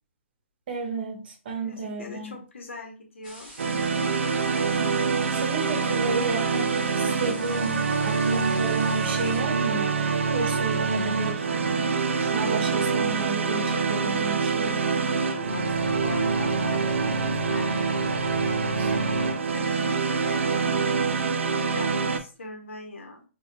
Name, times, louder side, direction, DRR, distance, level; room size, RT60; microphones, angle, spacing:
voice 1, 0.7-2.4 5.3-10.0 10.3-11.5 12.2-14.9 18.8-18.9, right 4 dB, 50° right, 4 dB, 0.9 m, -32 dB
voice 2, 1.6-3.5 15.0-17.8 18.4-23.2, left 3 dB, 65° left, 3 dB, 0.9 m, -42 dB
sound 1, 3.2-9.4, right 1 dB, 5° right, 1.8 m, -45 dB
sound 2, 3.6-22.2, right 4 dB, 65° right, 0.5 m, -25 dB
4.2 x 2.3 x 2.4 m, 0.34 s
figure-of-eight pair, 125°, 7 cm